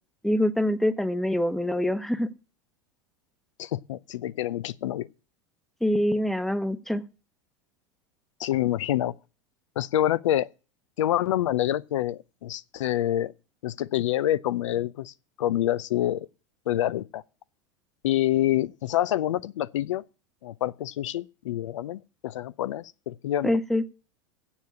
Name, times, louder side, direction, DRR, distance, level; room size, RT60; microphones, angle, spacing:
voice 1, 0.2-2.3 5.8-7.0 23.4-23.8, left 1 dB, ahead, 0.9 m, -25 dB
voice 2, 3.6-5.1 8.4-9.1 9.8-10.5 11.0-13.3 13.6-16.3 16.7-17.2 18.0-20.0 20.4-23.6, left 13 dB, 80° left, 0.6 m, -27 dB
7.9 x 7.1 x 8.4 m
hypercardioid pair, 100°, 16 cm